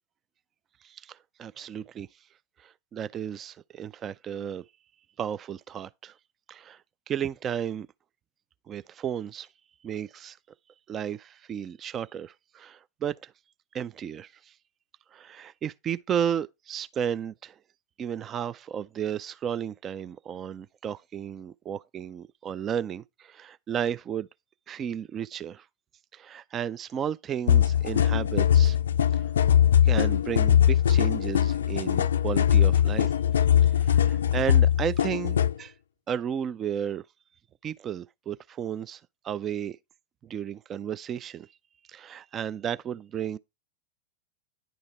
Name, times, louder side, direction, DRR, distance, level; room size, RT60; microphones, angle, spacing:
voice 1, 0.8-2.1 2.6-4.6 5.2-6.2 6.5-7.9 8.7-9.5 9.8-10.4 10.9-13.3 13.7-14.5 15.1-17.6 18.0-24.3 24.7-25.7 26.1-28.8 29.1-29.3 29.8-33.2 33.6-35.7 36.1-37.0 37.6-39.8 40.2-41.5 41.9-43.4, right 8 dB, 25° right, 0.3 m, -33 dB
sound 1, 27.5-35.5, left 10 dB, 65° left, 0.4 m, -21 dB
10.0 x 3.9 x 4.5 m
figure-of-eight pair, 90°, 0 cm